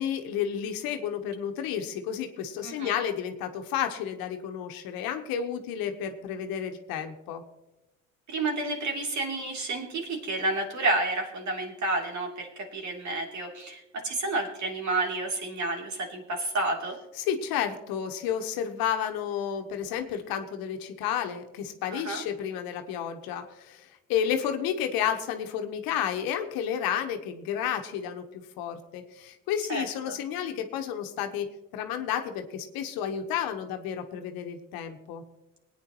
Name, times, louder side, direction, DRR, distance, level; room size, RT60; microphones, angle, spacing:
voice 1, 0.0-7.4 17.2-35.2, left 9 dB, 70° left, 6 dB, 1.3 m, -31 dB
voice 2, 2.6-3.0 8.3-17.0 21.9-22.2 29.7-30.2, right 2 dB, 50° right, 0 dB, 3.3 m, -30 dB
21.5 x 9.4 x 3.1 m, 0.97 s
hypercardioid pair, 70°, 37 cm